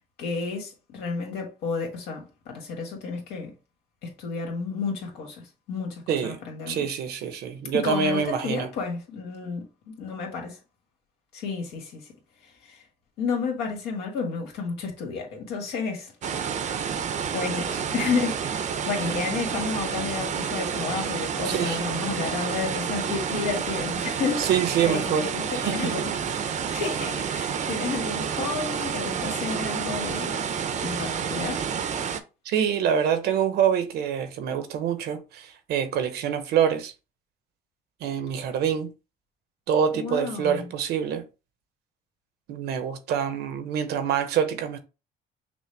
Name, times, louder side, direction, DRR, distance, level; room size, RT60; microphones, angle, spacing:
voice 1, 0.2-3.5 4.0-5.4 5.7-6.9 7.8-10.6 11.3-12.1 12.4-12.8 13.2-16.1 17.3-24.5 24.8-26.3 26.7-30.4 30.8-31.7 39.9-40.7, left 5 dB, 85° left, 1.7 m, -31 dB
voice 2, 6.1-8.7 21.4-21.8 24.4-26.1 32.4-36.9 38.0-38.9 39.7-41.3 42.5-44.8, right 8 dB, 75° right, 0.8 m, -26 dB
sound 1, 16.2-32.2, right 7 dB, 45° right, 0.6 m, -29 dB
6.1 x 2.1 x 3.3 m
cardioid pair, 110°, 17 cm